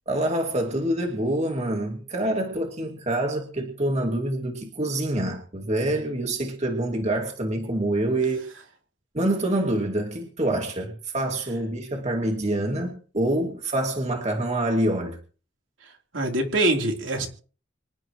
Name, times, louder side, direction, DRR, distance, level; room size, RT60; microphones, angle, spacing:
voice 1, 0.1-8.4 9.1-15.2, right 1 dB, 35° right, 2 dB, 2.4 m, -26 dB
voice 2, 16.1-17.3, right 1 dB, 75° right, 2 dB, 3.7 m, -23 dB
26.0 x 11.5 x 3.1 m, 0.40 s
head